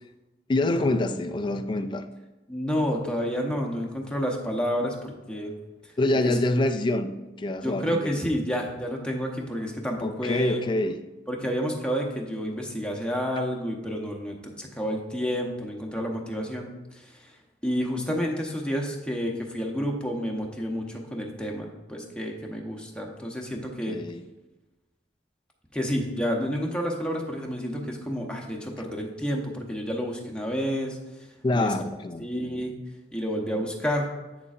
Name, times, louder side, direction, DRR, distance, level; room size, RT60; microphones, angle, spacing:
voice 1, 0.5-2.1 6.0-8.2 10.0-11.0 23.9-24.2 31.4-32.3, left 2 dB, 25° left, 9 dB, 0.4 m, -26 dB
voice 2, 2.5-5.5 7.6-10.6 11.3-17.3 17.6-24.0 25.7-31.0 31.5-31.7 32.2-32.7 33.1-34.1, equal, 5° left, 0 dB, 0.9 m, -30 dB
8.5 x 6.8 x 2.5 m, 1.1 s
head